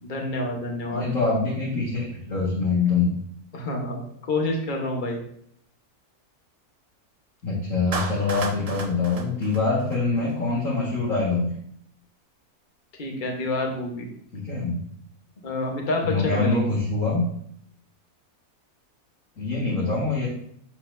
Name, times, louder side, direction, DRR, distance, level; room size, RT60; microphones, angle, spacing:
voice 1, 0.0-1.1 3.5-5.2 13.0-14.1 15.4-16.6, left 2 dB, 35° left, 0 dB, 1.4 m, -28 dB
voice 2, 0.9-3.1 7.4-11.5 14.3-14.8 16.0-17.2 19.4-20.3, left 3 dB, 60° left, -8 dB, 2.3 m, -24 dB
Clapping, 7.9-10.3, right 4 dB, 40° right, 0.5 m, -34 dB
11.5 x 4.2 x 2.7 m, 0.69 s
omnidirectional pair, 1.6 m